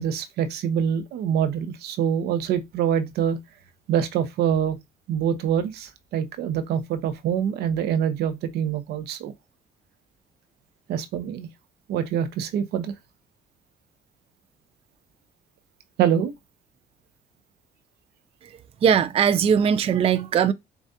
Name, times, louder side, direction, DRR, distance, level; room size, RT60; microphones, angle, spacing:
voice 1, 0.0-3.4 3.9-4.8 5.1-9.3 10.9-11.5 11.9-12.9 16.0-16.3, right 8 dB, 75° right, 0.7 m, -25 dB
voice 2, 18.8-20.5, right 8 dB, 35° right, 0.4 m, -20 dB
7.0 x 2.4 x 2.7 m
cardioid pair, 110°, 17 cm